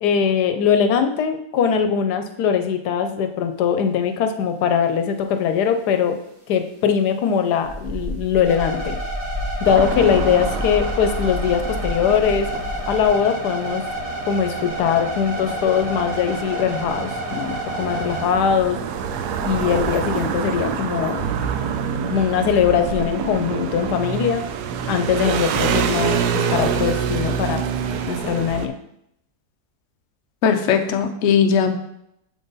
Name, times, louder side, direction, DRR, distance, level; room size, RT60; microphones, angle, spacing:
voice 1, 0.0-6.2 6.5-9.0 9.6-12.5 12.9-13.8 14.3-18.8 19.4-21.2 22.1-24.4 24.9-27.6 28.1-28.7, left 7 dB, 85° left, 7 dB, 1.2 m, -21 dB
sound 1, 7.6-13.1, left 1 dB, 60° right, 1.9 m, -30 dB
sound 2, 8.4-18.2, right 1 dB, 45° right, 2.3 m, -30 dB
sound 3, 9.7-28.7, right 7 dB, 80° right, 1.1 m, -27 dB
voice 2, 30.4-31.8, left 7 dB, 60° left, 6 dB, 0.8 m, -18 dB
6.9 x 3.8 x 3.9 m, 0.76 s
omnidirectional pair, 1.7 m